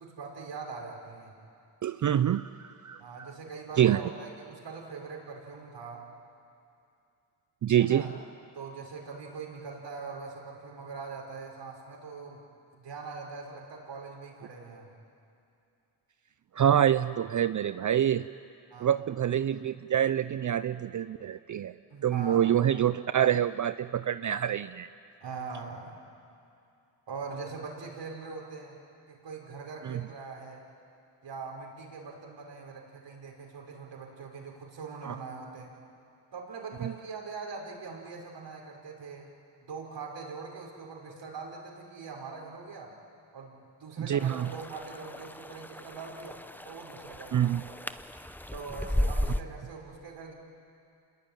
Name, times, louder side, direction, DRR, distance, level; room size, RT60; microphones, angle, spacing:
voice 1, 0.0-1.4 3.0-6.1 7.8-8.1 8.5-12.4 12.7-14.9 18.7-19.0 21.9-22.6 25.2-26.0 27.1-28.8 29.1-30.6 31.2-35.8 36.3-39.3 39.6-42.9 43.3-47.8 48.5-50.3, right 4 dB, 60° right, 0 dB, 5.9 m, -42 dB
voice 2, 1.8-3.3 3.8-4.1 7.6-8.1 16.5-18.3 18.8-21.7 22.0-24.9 29.8-30.0 35.0-35.2 36.8-36.9 44.0-44.5 47.3-47.6, right 10 dB, 40° right, 14 dB, 0.6 m, -26 dB
sound 1, 44.2-49.4, left 1 dB, 5° left, 0.9 m, -35 dB
27.0 x 21.5 x 9.2 m, 2.6 s
supercardioid pair, 70°, 49 cm